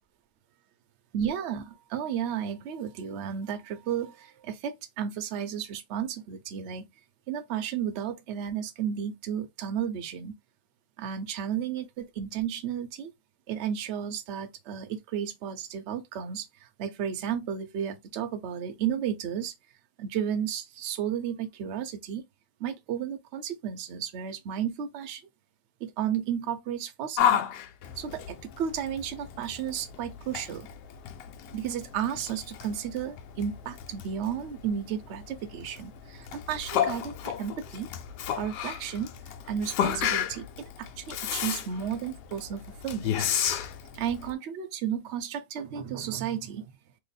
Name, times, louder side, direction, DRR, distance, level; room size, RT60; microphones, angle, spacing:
voice 1, 1.1-6.9 7.3-10.4 11.0-13.1 13.5-19.5 20.0-22.2 22.6-25.2 25.8-27.4 28.0-30.7 31.5-37.9 38.4-39.1 39.5-40.5 40.8-43.3 43.9-46.7, right 9 dB, 60° right, 0.7 m, -33 dB
Yell, 27.2-44.3, left 9 dB, 85° left, 1.2 m, -32 dB
3.0 x 2.1 x 4.0 m
omnidirectional pair, 1.8 m